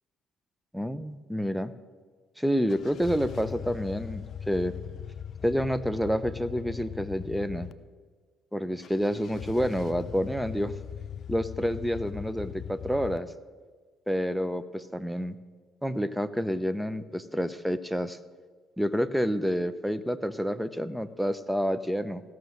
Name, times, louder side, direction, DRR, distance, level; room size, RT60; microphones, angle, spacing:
voice 1, 0.7-1.7 2.4-4.7 5.4-7.7 8.5-10.7 11.3-13.3 14.1-15.4 15.8-18.2 18.8-22.2, equal, ahead, 14 dB, 0.7 m, -29 dB
sound 1, 2.7-7.7 8.8-13.2, left 8 dB, 60° left, 0.4 m, -40 dB
15.5 x 6.4 x 7.3 m, 1.4 s
supercardioid pair, 65°, 0 cm